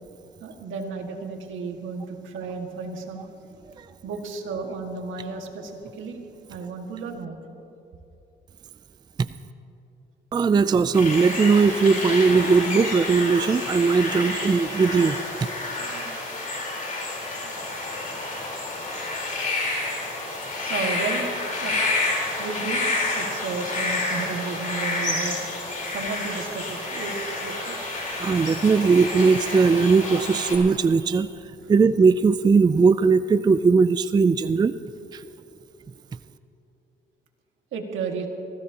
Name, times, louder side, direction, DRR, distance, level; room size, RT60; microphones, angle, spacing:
voice 1, 0.4-3.3 4.0-6.2 6.5-7.4 15.6-16.5 17.4-17.5 20.7-21.9 22.4-22.9 23.2-25.4 25.9-27.8 37.7-38.3, right 4 dB, 80° right, 2 dB, 1.9 m, -33 dB
voice 2, 10.3-15.2 28.2-31.3 31.7-34.8 35.1-35.2, right 4 dB, 20° right, 13 dB, 0.3 m, -19 dB
sound 1, 10.9-30.6, left 2 dB, 40° left, 4.0 m, -29 dB
24.5 x 16.0 x 2.9 m, 2.8 s
cardioid pair, 90°, 20 cm